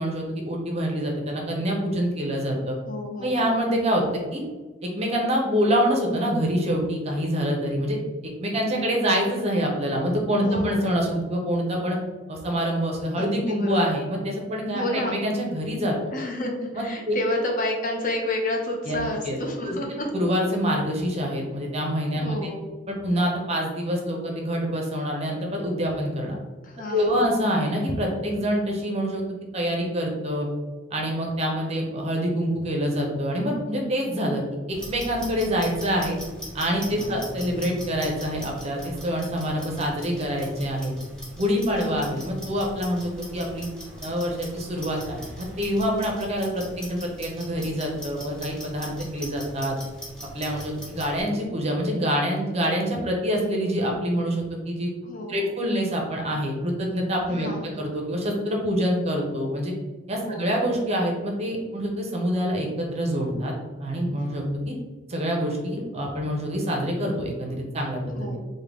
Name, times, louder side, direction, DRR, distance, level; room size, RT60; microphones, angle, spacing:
voice 1, 0.0-2.8 3.2-4.4 4.8-8.0 8.4-12.0 12.3-16.0 16.7-17.2 18.9-19.4 19.7-19.8 20.1-22.5 22.9-26.4 26.9-29.3 29.5-30.5 30.9-34.4 34.7-36.2 36.5-40.9 41.4-43.7 44.0-49.7 50.3-54.9 55.3-57.5 57.8-59.7 60.1-63.5 63.8-64.7 65.1-68.3, equal, 35° right, 0 dB, 0.6 m, -26 dB
voice 2, 2.9-3.5 4.1-4.3 10.4-10.8 13.2-13.8 14.7-15.2 16.1-20.1 22.2-22.6 26.6-27.3 36.9-37.3 41.7-42.1 55.0-55.5 57.3-57.8 60.2-60.5 68.2-68.4, left 1 dB, 45° left, 2 dB, 0.5 m, -30 dB
Clock, 34.7-51.2, equal, 5° left, 1.0 m, -40 dB
3.6 x 2.2 x 3.3 m, 1.3 s
head